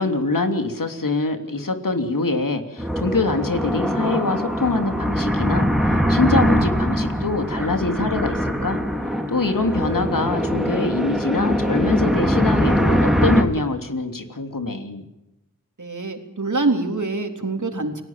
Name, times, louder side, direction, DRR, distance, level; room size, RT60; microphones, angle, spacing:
voice 1, 0.0-8.8 9.3-15.1, left 3 dB, 80° left, 6 dB, 3.2 m, -24 dB
sound 1, 2.8-13.4, equal, ahead, 3.8 m, -22 dB
voice 2, 15.8-18.0, right 3 dB, 65° right, 5 dB, 3.7 m, -25 dB
29.5 x 19.5 x 7.5 m, 0.91 s
wide cardioid pair, 50°, 32 cm